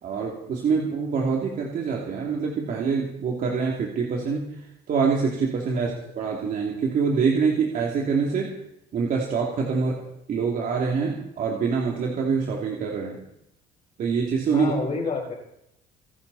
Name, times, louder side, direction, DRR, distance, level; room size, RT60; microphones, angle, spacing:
voice 1, 0.0-8.5 8.9-10.0 10.3-13.2 14.0-14.7, right 5 dB, 55° right, -2 dB, 3.0 m, -25 dB
voice 2, 14.5-15.3, left 4 dB, 45° left, 0 dB, 5.4 m, -30 dB
27.5 x 10.5 x 4.3 m, 0.80 s
cardioid pair, 110°, 17 cm